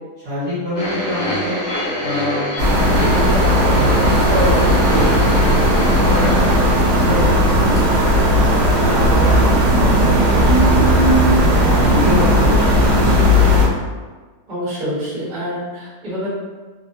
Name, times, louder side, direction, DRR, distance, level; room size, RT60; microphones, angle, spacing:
voice 1, 0.2-1.6 2.0-7.6 8.0-8.3 8.8-9.7 10.1-11.4 11.8-13.3, left 1 dB, 60° right, -9 dB, 1.0 m, -25 dB
sound 1, 0.8-7.5 7.8-7.9 8.7-8.8, left 1 dB, 60° left, 0.7 m, -27 dB
sound 2, 2.6-13.7, equal, 85° right, 0.5 m, -15 dB
voice 2, 14.5-16.3, equal, 30° right, -9 dB, 1.0 m, -27 dB
2.9 x 2.1 x 2.6 m, 1.4 s
omnidirectional pair, 1.7 m